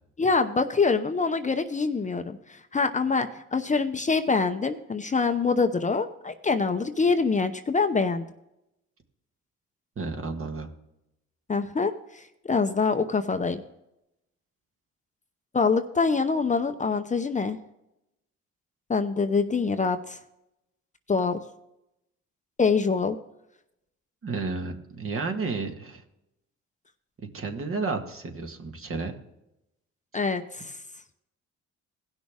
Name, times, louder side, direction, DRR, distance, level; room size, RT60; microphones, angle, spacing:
voice 1, 0.2-8.2 11.5-13.6 15.5-17.6 18.9-20.2 21.1-21.4 22.6-23.2 30.1-30.8, left 4 dB, 25° left, 8 dB, 0.7 m, -25 dB
voice 2, 9.9-10.7 24.2-26.0 27.3-29.1, right 4 dB, 45° right, 4 dB, 1.7 m, -32 dB
17.0 x 6.3 x 3.6 m, 0.86 s
cardioid pair, 90°, 30 cm